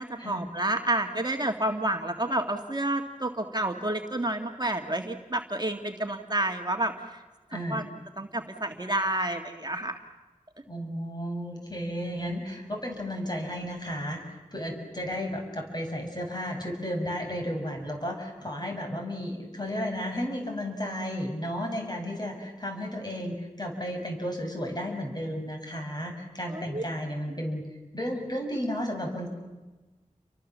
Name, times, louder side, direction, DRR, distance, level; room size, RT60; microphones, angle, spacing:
voice 1, 0.0-7.2 7.7-7.9 8.2-10.0 26.5-26.8, right 1 dB, 30° right, 4 dB, 1.9 m, -29 dB
voice 2, 7.5-7.8 10.7-27.7 27.9-29.3, equal, 30° left, 2 dB, 7.2 m, -33 dB
30.0 x 24.0 x 7.4 m, 1.2 s
wide cardioid pair, 45°, 13 cm